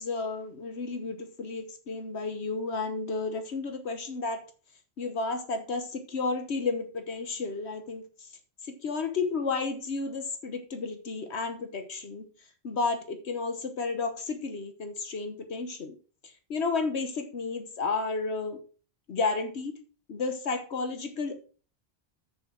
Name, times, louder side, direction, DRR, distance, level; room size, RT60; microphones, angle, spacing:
voice 1, 0.0-4.4 5.0-8.0 8.6-12.3 12.6-15.9 16.5-18.6 19.1-19.8 20.1-21.3, left 4 dB, 75° left, 7 dB, 1.3 m, -32 dB
7.0 x 6.5 x 6.2 m, 0.39 s
omnidirectional pair, 1.1 m